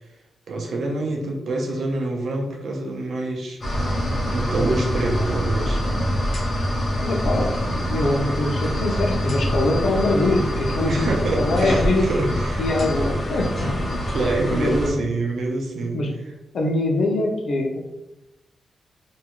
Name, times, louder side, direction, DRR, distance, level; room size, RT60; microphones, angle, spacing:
voice 1, 0.5-5.8 10.9-12.6 14.1-16.0, right 2 dB, 70° right, 1 dB, 0.5 m, -26 dB
sound 1, 3.6-14.9, equal, 40° left, 0.8 m, -25 dB
voice 2, 7.0-11.1 11.4-12.1 12.6-13.5 14.5-15.1 15.9-16.1 16.5-17.8, left 2 dB, 65° left, 0 dB, 0.6 m, -23 dB
2.6 x 2.3 x 2.9 m, 0.91 s
wide cardioid pair, 120°, 0 cm